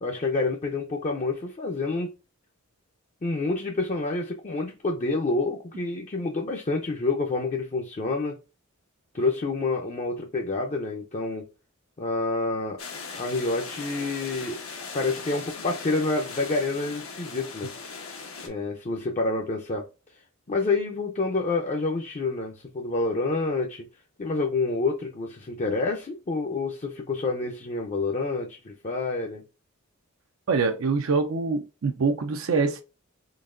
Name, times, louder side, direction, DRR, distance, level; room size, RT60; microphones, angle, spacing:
voice 1, 0.0-2.1 3.2-8.4 9.1-11.5 12.0-12.8 13.1-14.6 14.9-17.7 18.4-19.8 20.5-23.8 24.2-29.4, left 3 dB, 35° left, 0.5 m, -28 dB
sound 1, 12.8-18.5, left 4 dB, 90° left, 1.2 m, -39 dB
voice 2, 30.5-32.8, right 4 dB, 65° right, 0.5 m, -24 dB
3.9 x 3.4 x 2.5 m
head